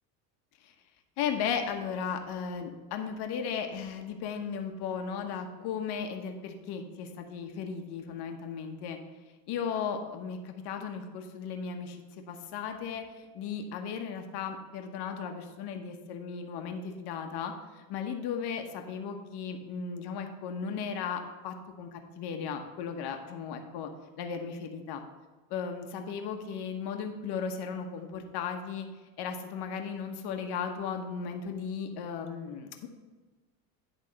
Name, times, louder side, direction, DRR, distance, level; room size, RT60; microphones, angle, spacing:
voice 1, 1.2-9.0 9.5-12.0 12.3-13.0 13.3-23.9 24.2-25.0 25.5-28.9 29.2-32.9, left 6 dB, 50° left, 5 dB, 1.1 m, -36 dB
10.5 x 3.6 x 5.1 m, 1.3 s
supercardioid pair, 100°, 49 cm